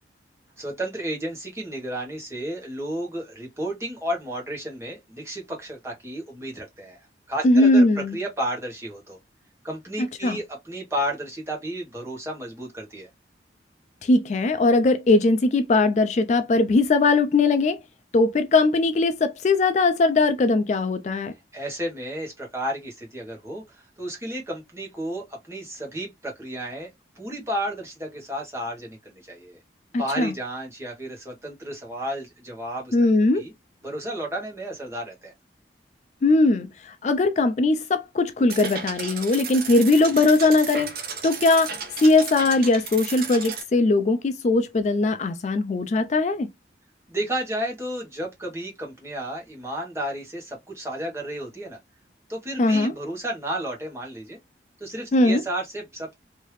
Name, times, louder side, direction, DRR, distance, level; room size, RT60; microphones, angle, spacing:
voice 1, 0.6-7.8 8.1-9.2 9.6-13.1 21.5-26.9 27.2-29.6 30.0-32.9 33.3-33.5 33.8-35.3 47.1-51.8 52.3-54.4 54.8-56.2, right 1 dB, 15° right, 1.1 m, -32 dB
voice 2, 7.4-8.2 10.2-10.4 14.0-17.8 18.1-21.3 29.9-30.3 32.9-33.4 36.2-40.9 41.2-41.8 42.0-46.5 52.6-52.9 55.1-55.4, left 2 dB, 40° left, 0.3 m, -20 dB
sound 1, 38.5-43.6, right 6 dB, 55° right, 0.8 m, -34 dB
3.2 x 2.7 x 3.0 m
head